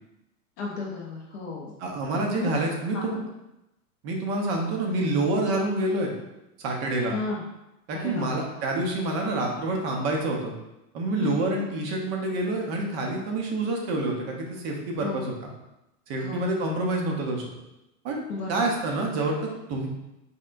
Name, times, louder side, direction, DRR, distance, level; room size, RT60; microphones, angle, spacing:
voice 1, 0.6-1.8 2.4-2.5 2.9-3.3 7.1-7.4 7.9-8.5 11.2-11.5 15.0-15.3 16.2-16.5 18.3-18.7, left 4 dB, 25° left, -3 dB, 0.4 m, -33 dB
voice 2, 1.8-3.2 4.0-6.1 6.6-7.2 7.9-10.5 10.9-15.5 16.1-17.5 18.0-18.2 18.5-19.4 19.7-19.9, right 2 dB, 35° right, 0 dB, 0.8 m, -27 dB
4.3 x 3.3 x 2.5 m, 0.91 s
supercardioid pair, 140°, 47 cm